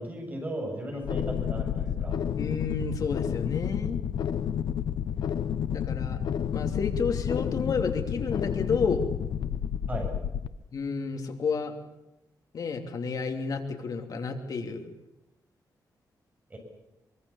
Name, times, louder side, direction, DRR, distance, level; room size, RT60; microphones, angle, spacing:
voice 1, 0.0-2.3 9.9-10.1 16.5-16.6, right 1 dB, 25° right, 2 dB, 7.2 m, -36 dB
sound 1, 1.0-10.5, left 9 dB, 85° left, 0.8 m, -30 dB
voice 2, 2.4-4.0 5.7-6.2 6.5-9.0 10.7-11.8 12.5-14.9, left 5 dB, 60° left, 4 dB, 2.9 m, -31 dB
24.0 x 22.5 x 7.2 m, 0.93 s
wide cardioid pair, 145°, 7 cm